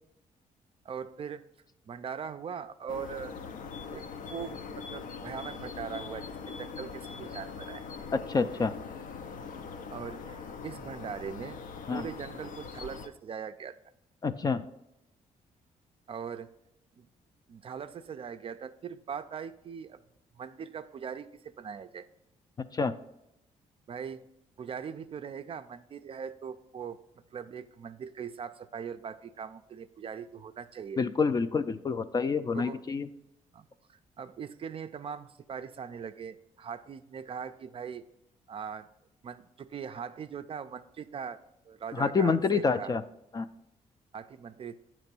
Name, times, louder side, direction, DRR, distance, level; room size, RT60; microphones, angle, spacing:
voice 1, 0.8-1.4 1.9-3.3 3.9-7.9 9.9-11.6 11.9-13.8 16.1-16.5 17.0-17.1 17.5-20.0 20.4-22.1 23.9-24.2 24.6-27.0 27.3-31.0 32.5-32.8 33.5-38.1 38.5-38.9 39.2-41.4 41.6-42.9 44.1-44.8, right 7 dB, 40° right, 10 dB, 0.4 m, -41 dB
sound 1, 2.9-13.1, left 5 dB, 75° left, 0.6 m, -42 dB
voice 2, 8.3-8.7 11.9-12.0 14.2-14.6 22.7-22.9 31.0-33.1 42.0-43.0 43.3-43.5, left 5 dB, 30° left, 10 dB, 0.3 m, -27 dB
8.5 x 3.0 x 5.9 m, 0.84 s
cardioid pair, 95°, 14 cm